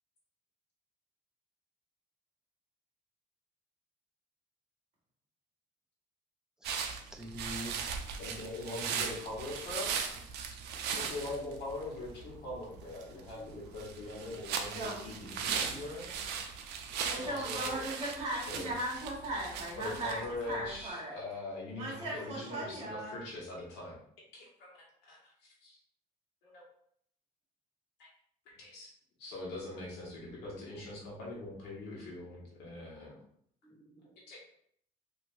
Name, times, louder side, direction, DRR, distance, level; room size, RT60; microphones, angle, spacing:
voice 1, 6.6-7.8 13.3-13.8 15.6-15.9 33.6-34.2, equal, 5° right, 4 dB, 0.3 m, -47 dB
sound 1, 6.6-20.9, right 7 dB, 75° right, 0.4 m, -39 dB
voice 2, 8.2-10.0 10.9-16.1 17.1-17.8 18.5-18.7 19.8-23.9 24.3-24.8 25.0-25.8 26.4-26.6 28.0-28.1 28.5-28.9 29.2-33.2 34.3-34.4, left 2 dB, 85° left, -4 dB, 1.2 m, -42 dB
voice 3, 14.5-15.0 17.0-21.1 21.8-23.1, right 1 dB, 40° right, -4 dB, 1.3 m, -38 dB
3.1 x 2.6 x 2.5 m, 0.66 s
cardioid pair, 110°, 17 cm